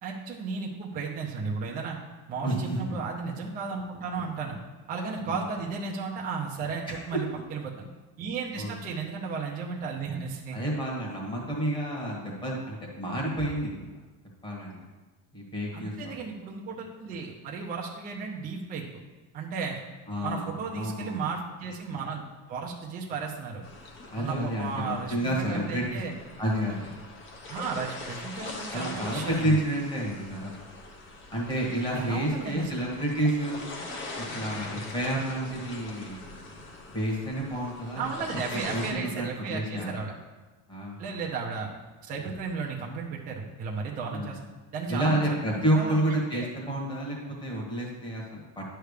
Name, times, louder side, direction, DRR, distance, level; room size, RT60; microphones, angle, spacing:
voice 1, 0.0-2.0 2.3-4.6 4.9-7.9 8.2-10.6 15.7-18.8 19.3-19.8 20.2-22.2 22.5-23.6 24.2-26.1 27.5-29.6 31.9-32.7 38.0-40.1 41.0-41.7 42.0-44.5 44.7-46.0 46.3-46.5, right 5 dB, 20° right, -2 dB, 0.6 m, -34 dB
voice 2, 2.4-2.8 5.3-5.4 6.9-7.4 8.6-8.7 10.5-13.9 14.4-14.8 15.3-16.2 20.1-21.2 24.1-26.0 26.4-26.9 28.7-30.5 31.3-33.6 34.3-36.2 36.9-38.1 38.5-40.0 40.7-41.2 44.1-44.3 44.9-48.6, right 1 dB, 10° left, -3 dB, 1.4 m, -30 dB
sound 1, 23.6-38.9, left 2 dB, 30° left, 0.8 m, -42 dB
10.0 x 3.4 x 6.5 m, 1.2 s
cardioid pair, 175°, 44 cm